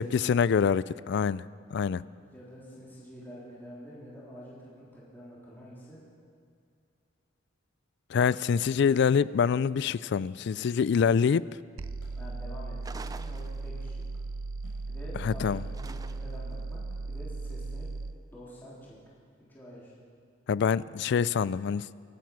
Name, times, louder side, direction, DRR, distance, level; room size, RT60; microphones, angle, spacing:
voice 1, 0.0-2.0 8.1-11.5 15.2-15.6 20.5-21.9, left 6 dB, 55° left, 20 dB, 0.3 m, -25 dB
voice 2, 2.2-6.0 12.2-14.0 14.9-16.8 17.1-17.9 18.3-19.0 19.5-19.9, equal, 10° left, -8 dB, 3.6 m, -47 dB
sound 1, 9.2-12.8 13.1-13.8 14.1-16.2 16.9-17.0 18.3-18.5, equal, 80° left, 4.7 m, -61 dB
sound 2, 11.8-18.2, right 3 dB, 90° right, 0.5 m, -37 dB
sound 3, 12.8-14.0 15.7-16.5, right 4 dB, 20° right, 0.4 m, -46 dB
25.5 x 9.3 x 6.1 m, 2.3 s
head